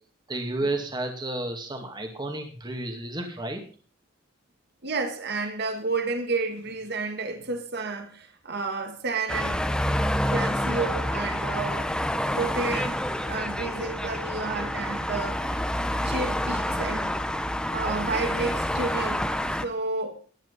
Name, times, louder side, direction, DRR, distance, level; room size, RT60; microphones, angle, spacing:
voice 1, 0.3-3.6, right 2 dB, 25° right, 2.3 m, -31 dB
voice 2, 4.8-9.8 10.3-11.9 12.3-15.7 16.0-17.1 17.4-19.3 19.6-20.2, right 3 dB, 60° right, 1.6 m, -31 dB
sound 1, 9.3-19.6, left 1 dB, 5° left, 0.9 m, -28 dB
15.0 x 10.5 x 5.6 m
head